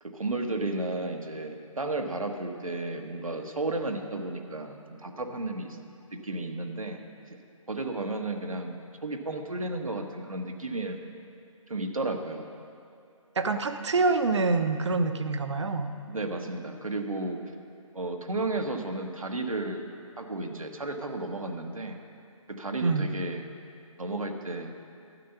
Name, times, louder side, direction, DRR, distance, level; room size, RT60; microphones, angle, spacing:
voice 1, 0.0-5.8 6.2-7.0 7.7-8.8 9.0-11.0 11.7-12.5 16.0-17.4 17.9-19.8 20.2-22.0 22.6-23.4 24.0-24.7, right 2 dB, 80° right, 4 dB, 1.2 m, -33 dB
voice 2, 13.4-15.9 22.8-23.1, right 3 dB, 55° right, 8 dB, 0.8 m, -26 dB
12.0 x 9.4 x 5.7 m, 2.6 s
figure-of-eight pair, 145°, 17 cm